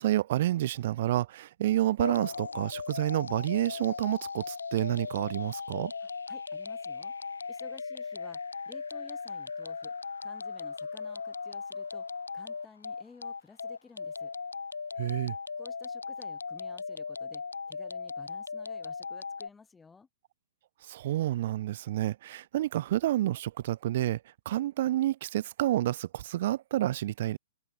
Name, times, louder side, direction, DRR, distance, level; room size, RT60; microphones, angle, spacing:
voice 1, 0.0-5.9 15.0-15.3 20.9-24.2 24.5-27.4, right 13 dB, 55° right, 0.4 m, -29 dB
sound 1, 2.0-19.5, left 5 dB, 85° left, 1.0 m, -38 dB
voice 2, 6.0-7.1 7.5-8.4 8.7-9.9 10.2-12.1 12.3-14.3 15.6-20.1, left 4 dB, 10° left, 1.1 m, -54 dB
open air
hypercardioid pair, 120°, 0 cm